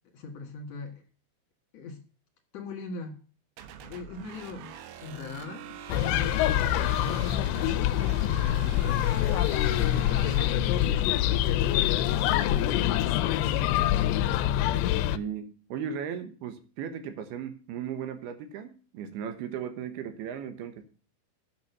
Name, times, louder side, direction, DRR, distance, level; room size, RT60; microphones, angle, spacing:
voice 1, 0.1-1.0 1.7-2.0 2.5-3.2 3.8-7.2 7.6-9.5 9.8-10.3 10.8-11.5 12.3-13.0 13.3-13.9, left 4 dB, 55° left, 3 dB, 2.0 m, -40 dB
sound 1, 3.6-11.1, right 9 dB, 90° right, 3.7 m, -44 dB
sound 2, 5.9-15.2, left 12 dB, 80° left, 2.6 m, -25 dB
voice 2, 15.1-20.8, right 8 dB, 70° right, 9 dB, 2.7 m, -37 dB
10.5 x 6.5 x 6.8 m, 0.39 s
omnidirectional pair, 5.5 m